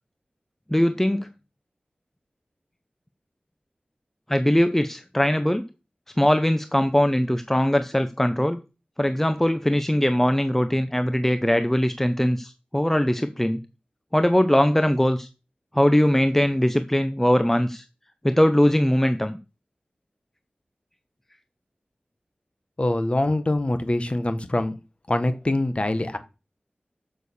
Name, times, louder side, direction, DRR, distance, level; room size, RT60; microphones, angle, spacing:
voice 1, 0.7-1.3 4.3-5.6 6.2-8.6 9.0-13.6 14.1-15.3 15.7-17.8 18.2-19.3, equal, 10° left, 9 dB, 0.7 m, -21 dB
voice 2, 22.8-24.7 25.1-26.2, left 1 dB, 40° left, 9 dB, 1.3 m, -24 dB
6.7 x 6.6 x 7.0 m, 0.30 s
wide cardioid pair, 60°, 3 cm